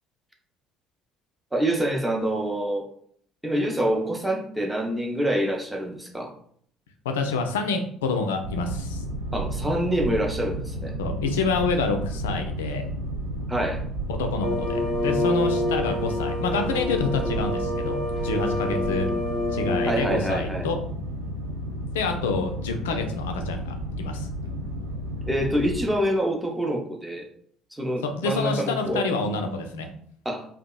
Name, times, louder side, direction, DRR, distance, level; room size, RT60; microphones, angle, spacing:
voice 1, 1.5-2.9 3.4-6.3 9.3-10.9 13.5-13.8 19.9-20.7 25.2-27.3 27.7-29.1 30.2-30.5, right 1 dB, 10° right, 1 dB, 0.6 m, -26 dB
voice 2, 7.0-9.0 11.0-12.9 14.1-19.1 19.5-20.8 21.9-24.3 28.0-29.9, left 4 dB, 70° left, 5 dB, 0.3 m, -27 dB
Boat Water vehicle, 8.4-25.8, right 1 dB, 75° right, 0.3 m, -32 dB
sound 1, 14.4-20.1, left 1 dB, 35° right, 0.9 m, -27 dB
2.7 x 2.2 x 2.2 m, 0.62 s
figure-of-eight pair, 55°, 0 cm